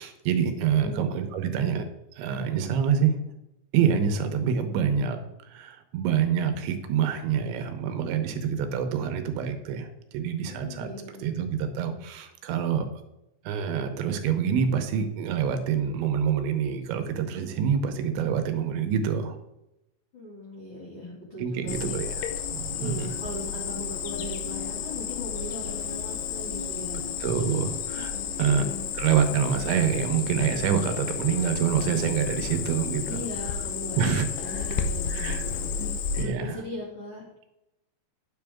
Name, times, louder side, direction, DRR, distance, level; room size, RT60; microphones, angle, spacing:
voice 1, 0.0-1.9 2.2-3.2 3.7-5.2 5.5-10.9 11.2-12.9 13.5-19.4 21.4-22.1 22.5-23.2 27.2-28.1 28.4-28.6 28.9-33.2 34.0-34.8 35.1-35.4 35.8-36.6, right 7 dB, 80° right, 7 dB, 3.1 m, -26 dB
voice 2, 0.6-1.0 10.5-11.2 20.1-22.0 22.8-27.1 28.1-28.9 33.1-37.2, left 1 dB, 40° left, -6 dB, 1.9 m, -39 dB
Cricket, 21.7-36.2, left 7 dB, 85° left, 3.4 m, -32 dB
9.6 x 7.8 x 3.5 m, 0.89 s
omnidirectional pair, 5.3 m